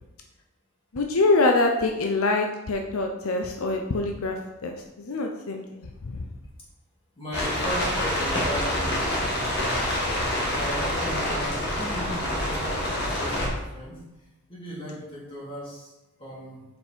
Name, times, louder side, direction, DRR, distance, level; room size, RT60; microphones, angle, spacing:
voice 1, 0.9-6.2, left 2 dB, 80° left, 3 dB, 0.7 m, -25 dB
voice 2, 7.2-9.1 10.5-14.0 14.5-15.9 16.2-16.6, equal, 25° left, -7 dB, 2.9 m, -36 dB
sound 1, 7.3-13.5, left 1 dB, 50° left, 1.9 m, -27 dB
7.1 x 5.3 x 4.5 m, 0.99 s
head